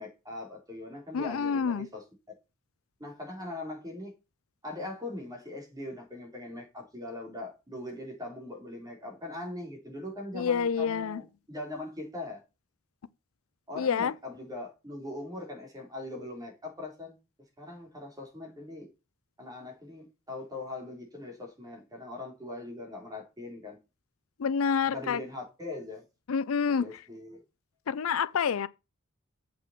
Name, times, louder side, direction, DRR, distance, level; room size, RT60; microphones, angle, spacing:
voice 1, 0.0-2.0 3.0-4.1 4.6-12.4 13.7-17.2 17.6-18.9 19.4-23.8 24.9-26.0 26.8-27.4, left 2 dB, 20° right, 4.3 m, -41 dB
voice 2, 1.1-1.9 10.3-11.2 13.8-14.1 24.4-25.2 26.3-26.8 27.9-28.7, left 6 dB, 75° left, 0.5 m, -28 dB
7.8 x 6.1 x 5.8 m
head